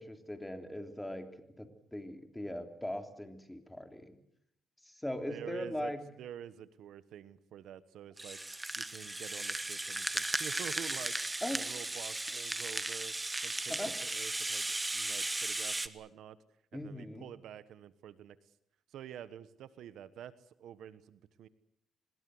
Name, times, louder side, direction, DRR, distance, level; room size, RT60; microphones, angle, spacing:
voice 1, 0.0-4.2 4.8-6.0 11.4-11.6 13.7-13.9 16.7-17.3, left 1 dB, 5° left, 6 dB, 3.4 m, -40 dB
voice 2, 5.3-5.9 6.2-8.4 8.8-13.1 13.4-13.8 14.0-14.7 14.9-16.4 16.7-18.4 18.9-21.5, right 10 dB, 75° right, 14 dB, 1.2 m, -48 dB
Rattle (instrument), 8.2-15.9, right 2 dB, 15° right, 1.5 m, -36 dB
25.5 x 21.0 x 7.9 m, 0.74 s
cardioid pair, 90°, 0 cm